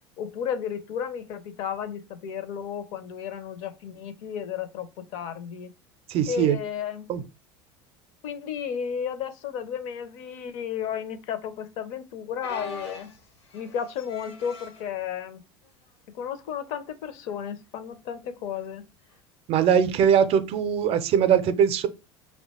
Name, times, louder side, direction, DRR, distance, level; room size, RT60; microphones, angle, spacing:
voice 1, 0.2-5.7 6.3-7.1 8.2-13.1 13.5-15.4 16.1-18.8, left 8 dB, 60° left, 0.5 m, -33 dB
voice 2, 6.1-6.6 7.1-7.2 19.5-21.9, right 8 dB, 45° right, 0.4 m, -21 dB
sound 1, 12.4-14.9 15.6-15.9 16.2-16.3 17.2-17.5 19.1-19.2, left 3 dB, 85° left, 1.0 m, -42 dB
2.8 x 2.2 x 4.1 m
hypercardioid pair, 80°, 14 cm